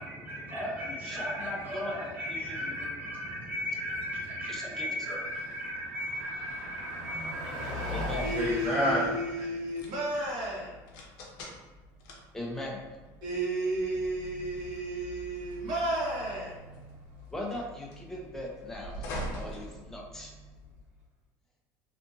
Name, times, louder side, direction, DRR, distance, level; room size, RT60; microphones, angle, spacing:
voice 1, 0.0-9.5, equal, 20° right, -7 dB, 1.1 m, -34 dB
voice 2, 0.5-2.9 4.5-4.9 7.9-8.3 12.3-12.8 17.3-20.3, left 1 dB, 5° left, -1 dB, 0.5 m, -39 dB
sound 1, 1.4-20.5, equal, 70° left, 0.6 m, -47 dB
Car passing by, 4.9-21.0, left 1 dB, 90° right, 1.2 m, -44 dB
voice 3, 8.2-10.8 13.2-16.6 19.6-19.7, right 1 dB, 60° right, -6 dB, 1.1 m, -33 dB
2.7 x 2.5 x 2.5 m, 1.2 s
cardioid pair, 135°, 8 cm